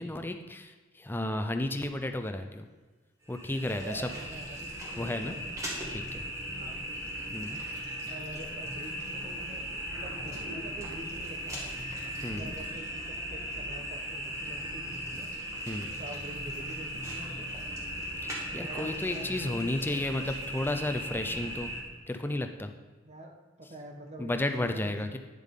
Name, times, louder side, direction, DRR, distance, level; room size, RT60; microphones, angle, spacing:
voice 1, 0.0-2.7 3.3-4.0 5.0-5.4 5.9-6.2 7.3-7.6 12.2-12.6 15.7-15.9 18.2-21.7 22.1-22.7 24.2-25.2, left 1 dB, 10° left, 7 dB, 0.5 m, -33 dB
sound 1, 3.2-21.8, equal, 15° right, 1.9 m, -38 dB
voice 2, 3.6-5.4 6.5-6.8 8.1-11.7 12.3-15.3 15.9-17.5 18.6-19.6 23.0-23.3 23.6-25.2, right 1 dB, 35° right, 3 dB, 1.1 m, -46 dB
sound 2, 9.9-14.5, equal, 85° right, 3.0 m, -49 dB
10.0 x 7.2 x 3.7 m, 1.3 s
head